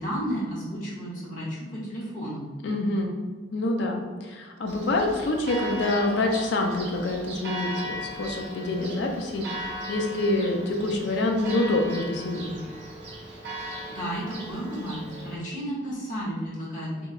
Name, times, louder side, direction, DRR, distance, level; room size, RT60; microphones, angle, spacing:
voice 1, 0.0-2.4 13.6-17.1, equal, 45° left, -7 dB, 0.9 m, -33 dB
voice 2, 2.6-3.2 3.5-12.6, left 2 dB, 65° left, 2 dB, 0.4 m, -26 dB
Church bell, 4.7-15.4, equal, 60° right, 0.6 m, -37 dB
2.9 x 2.3 x 2.3 m, 1.4 s
head